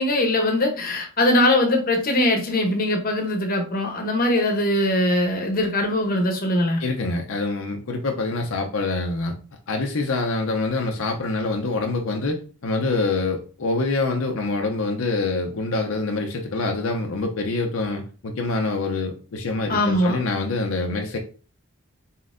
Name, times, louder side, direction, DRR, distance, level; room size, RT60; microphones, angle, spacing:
voice 1, 0.0-6.8 19.7-20.2, left 1 dB, 40° left, 3 dB, 0.8 m, -21 dB
voice 2, 6.8-9.3 9.7-12.4 12.6-21.2, left 3 dB, 65° left, 3 dB, 0.6 m, -25 dB
4.1 x 3.7 x 2.5 m, 0.38 s
head